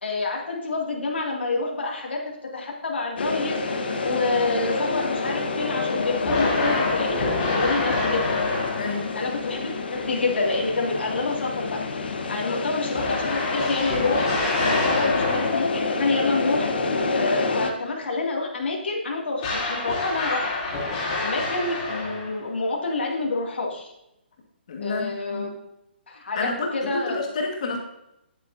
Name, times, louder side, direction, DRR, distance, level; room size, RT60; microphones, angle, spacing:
voice 1, 0.0-2.2 2.5-3.6 4.0-8.2 9.1-11.8 12.3-14.3 14.6-16.7 17.2-20.5 21.2-23.9 24.8-25.5 26.1-27.4, left 3 dB, 85° left, -1 dB, 2.4 m, -27 dB
sound 1, 3.2-17.7, left 3 dB, 65° left, 1.2 m, -28 dB
sound 2, 6.2-9.2 12.9-15.8 19.4-22.5, left 2 dB, 20° left, 3.1 m, -27 dB
voice 2, 8.7-9.1 12.4-12.6 24.7-25.6 26.3-27.8, left 3 dB, 40° left, 1 dB, 1.8 m, -30 dB
10.0 x 8.3 x 2.7 m, 0.83 s
hypercardioid pair, 175°, 6 cm